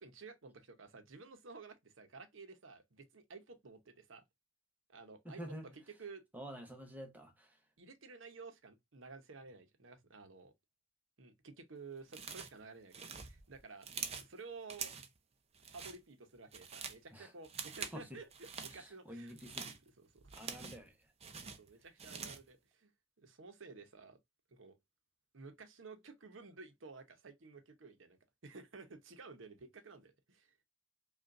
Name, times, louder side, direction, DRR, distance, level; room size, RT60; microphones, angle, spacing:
voice 1, 0.0-4.2 4.9-5.5 5.9-6.2 7.8-10.5 11.2-13.0 13.2-13.9 14.2-14.9 15.6-19.3 20.0-20.4 21.4-22.9 23.2-24.2 24.5-24.8 25.3-30.6, right 4 dB, 85° right, 0.9 m, -53 dB
voice 2, 5.2-5.7 6.3-7.6 17.1-17.3 17.8-18.0 18.7-19.7 20.3-21.0, equal, 10° right, 0.9 m, -48 dB
sound 1, 12.1-12.6 12.9-14.3 14.7-15.2 15.5-16.0 16.4-17.0 17.4-18.0 18.3-18.8 19.3-20.9 21.2-22.5, right 6 dB, 30° right, 0.6 m, -45 dB
5.2 x 2.5 x 2.5 m
head